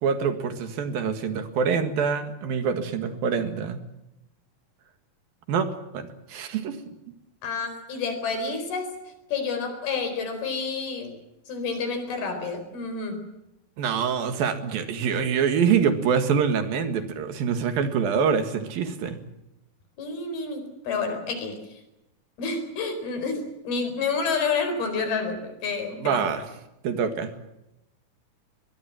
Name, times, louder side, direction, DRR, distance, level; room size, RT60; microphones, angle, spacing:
voice 1, 0.0-3.8 5.5-6.8 13.8-19.2 26.0-26.5 26.8-27.3, right 6 dB, 75° right, 8 dB, 3.6 m, -25 dB
voice 2, 7.4-8.9 9.3-11.1 11.5-13.3 20.0-21.7 22.4-26.2, left 4 dB, 85° left, 8 dB, 6.3 m, -29 dB
23.0 x 21.5 x 7.6 m, 0.90 s
omnidirectional pair, 4.3 m